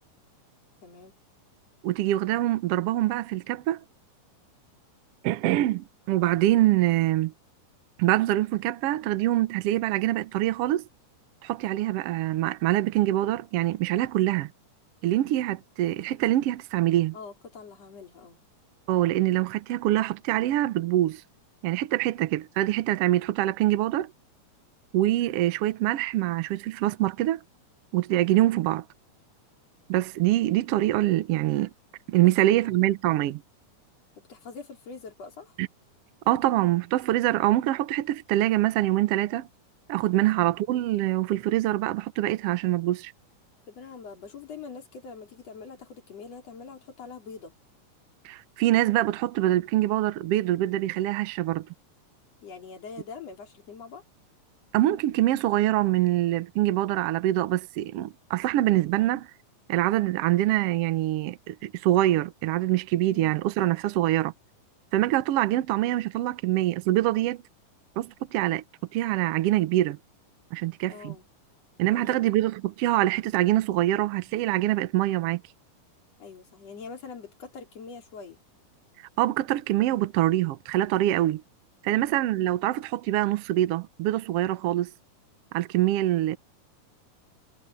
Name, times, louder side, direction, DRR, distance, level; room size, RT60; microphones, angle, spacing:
voice 1, 0.8-1.1 17.1-18.4 32.2-32.3 32.6-32.7 34.3-35.6 43.7-47.5 52.4-54.0 63.0-63.4 70.9-71.2 71.9-72.3 76.2-78.4 81.8-82.1, left 5 dB, 50° left, 4.4 m, -43 dB
voice 2, 1.8-3.8 5.2-7.3 8.0-10.8 11.4-14.5 15.0-17.2 18.9-21.2 21.6-24.1 24.9-27.4 27.9-28.8 29.9-31.7 32.1-33.4 35.6-35.7 36.3-39.5 39.9-43.1 48.2-51.7 54.7-59.3 59.7-64.3 64.9-67.4 68.0-68.6 68.9-70.0 70.5-71.1 71.8-75.4 79.2-81.4 81.8-84.9 85.5-86.4, right 15 dB, 90° right, 1.3 m, -24 dB
omnidirectional pair, 3.8 m